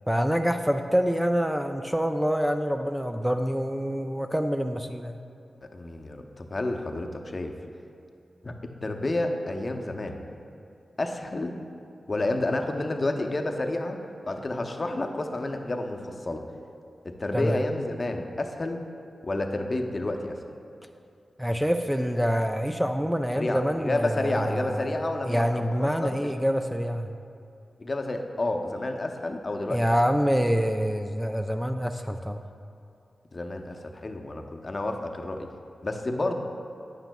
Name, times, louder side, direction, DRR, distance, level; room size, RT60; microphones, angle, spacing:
voice 1, 0.1-5.2 17.3-17.6 21.4-25.0 25.2-27.2 29.7-32.4, equal, 5° right, 6 dB, 0.3 m, -26 dB
voice 2, 5.7-7.5 8.4-8.6 8.8-10.2 11.0-11.5 12.1-14.0 14.3-16.4 17.0-18.8 19.2-20.4 23.3-26.2 27.8-29.9 33.3-35.5 35.8-36.3, left 2 dB, 45° left, 4 dB, 0.6 m, -30 dB
9.2 x 8.9 x 2.2 m, 2.5 s
cardioid pair, 50°, 0 cm